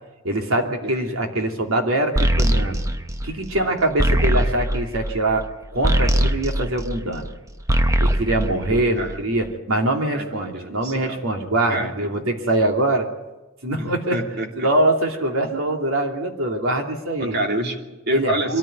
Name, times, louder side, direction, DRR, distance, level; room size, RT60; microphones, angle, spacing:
voice 1, 0.2-2.8 3.2-5.5 5.7-7.3 8.0-13.1 13.6-14.2 14.6-17.4 18.1-18.6, right 1 dB, 90° right, 3 dB, 2.9 m, -23 dB
voice 2, 0.8-1.2 3.5-3.8 8.7-9.2 10.1-11.2 11.7-12.2 13.8-14.7 17.2-18.6, right 1 dB, 55° right, 2 dB, 2.9 m, -29 dB
sound 1, 2.2-7.3 7.6-9.4, right 1 dB, 15° right, 0.8 m, -21 dB
23.5 x 14.0 x 9.4 m, 1.1 s
head